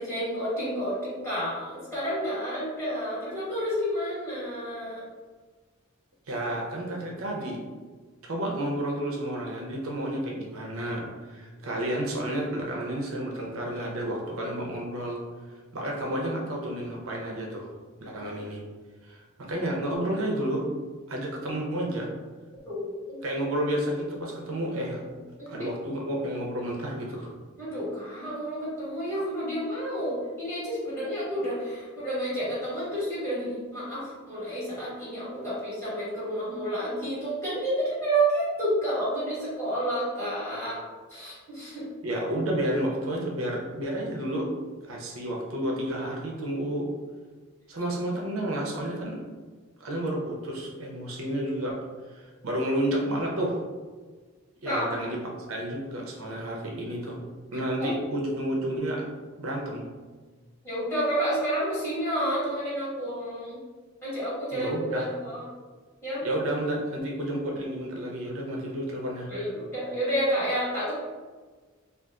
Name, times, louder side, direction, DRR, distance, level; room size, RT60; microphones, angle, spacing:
voice 1, 0.0-5.0 22.6-23.2 25.4-25.7 27.6-40.8 41.1-41.9 54.6-54.9 57.8-57.9 60.6-63.6 64.0-65.4 66.0-66.2 69.3-70.9, right 1 dB, 15° left, -11 dB, 1.4 m, -30 dB
voice 2, 6.3-7.6 8.2-15.2 15.7-17.7 18.0-18.6 19.0-20.7 21.1-22.1 23.2-25.0 25.5-27.3 42.0-44.5 44.8-46.9 47.7-49.2 49.8-51.8 52.1-53.6 54.6-55.2 55.5-57.2 57.5-59.1 59.4-59.9 64.5-65.1 66.2-69.3, right 1 dB, 85° right, -1 dB, 0.6 m, -31 dB
2.4 x 2.4 x 3.5 m, 1.4 s
head